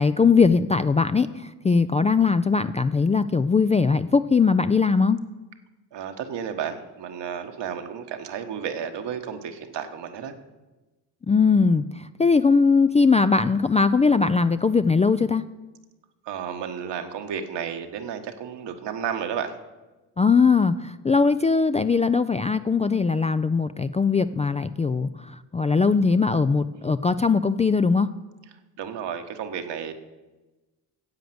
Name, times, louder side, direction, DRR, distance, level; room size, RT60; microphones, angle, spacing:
voice 1, 0.0-5.2 11.3-15.4 20.2-28.1, left 4 dB, 15° left, 11 dB, 0.3 m, -20 dB
voice 2, 5.9-10.3 16.2-19.5 28.8-29.9, right 7 dB, 65° right, 7 dB, 1.4 m, -32 dB
10.5 x 7.8 x 7.8 m, 1.2 s
supercardioid pair, 70°, 45 cm